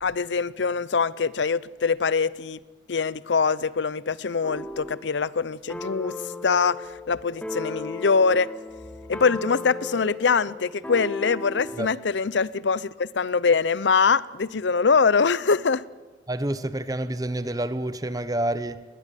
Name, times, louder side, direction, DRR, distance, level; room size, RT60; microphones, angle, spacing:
voice 1, 0.0-2.6 2.9-6.2 6.4-8.5 9.1-15.9, left 5 dB, 70° left, 0.6 m, -23 dB
sound 1, 4.4-5.1 5.7-11.9, left 2 dB, 5° left, 1.7 m, -36 dB
voice 2, 16.3-18.8, right 1 dB, 20° right, 0.9 m, -28 dB
20.5 x 19.5 x 8.5 m
head